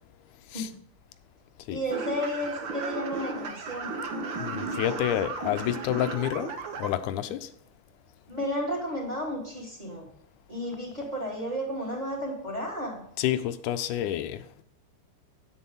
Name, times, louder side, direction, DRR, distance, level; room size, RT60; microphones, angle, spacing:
voice 1, 1.7-3.9 8.3-10.1 10.5-13.0, equal, 15° right, -2 dB, 2.6 m, -32 dB
sound 1, 1.9-6.9, right 3 dB, 65° right, 1.2 m, -35 dB
voice 2, 4.4-6.5 6.8-7.5 13.2-14.6, left 11 dB, 85° left, 10 dB, 2.1 m, -29 dB
9.9 x 8.7 x 4.0 m, 0.68 s
omnidirectional pair, 3.5 m